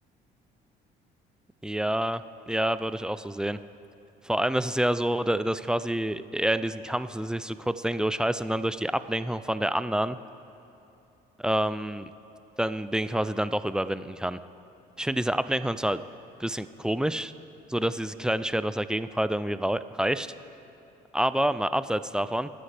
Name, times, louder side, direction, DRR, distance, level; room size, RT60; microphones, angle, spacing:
voice 1, 1.6-3.6 4.2-10.2 11.4-12.1 12.6-14.4 15.0-16.0 16.4-17.3 17.7-20.3 21.1-22.5, right 1 dB, 5° right, 13 dB, 0.3 m, -28 dB
23.0 x 9.8 x 3.4 m, 2.9 s
cardioid pair, 110°, 17 cm